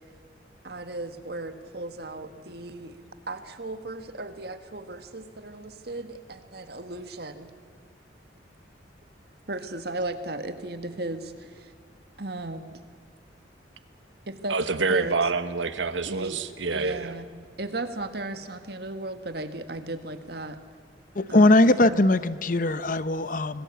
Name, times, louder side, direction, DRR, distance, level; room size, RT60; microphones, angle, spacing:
voice 1, 0.6-3.0 3.3-7.5 9.5-11.7 12.2-12.8 14.3-15.2 16.0-16.4 16.7-17.3 17.6-20.6 21.3-22.1, right 2 dB, 55° right, 8 dB, 1.8 m, -36 dB
voice 2, 14.5-17.1, right 4 dB, 80° right, 11 dB, 1.3 m, -27 dB
voice 3, 21.2-23.6, left 2 dB, 45° left, 14 dB, 0.8 m, -20 dB
25.5 x 19.5 x 8.4 m, 2.1 s
head